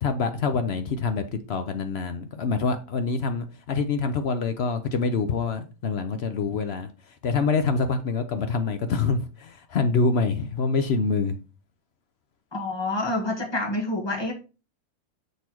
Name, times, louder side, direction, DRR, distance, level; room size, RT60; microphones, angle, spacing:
voice 1, 0.0-11.4, left 4 dB, 55° left, 0.8 m, -26 dB
voice 2, 12.5-14.3, left 2 dB, 15° left, 1.5 m, -27 dB
6.6 x 4.0 x 4.4 m
omnidirectional pair, 1.6 m